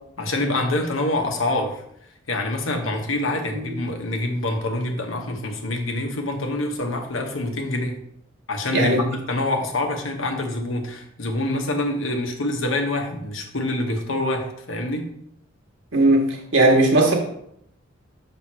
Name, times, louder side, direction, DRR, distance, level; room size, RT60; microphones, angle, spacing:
voice 1, 0.2-1.8 2.3-8.0 8.5-15.1, left 2 dB, 75° left, 3 dB, 1.1 m, -26 dB
voice 2, 8.7-9.1 15.9-17.2, right 2 dB, 65° right, -1 dB, 1.6 m, -18 dB
6.2 x 3.6 x 5.6 m, 0.73 s
head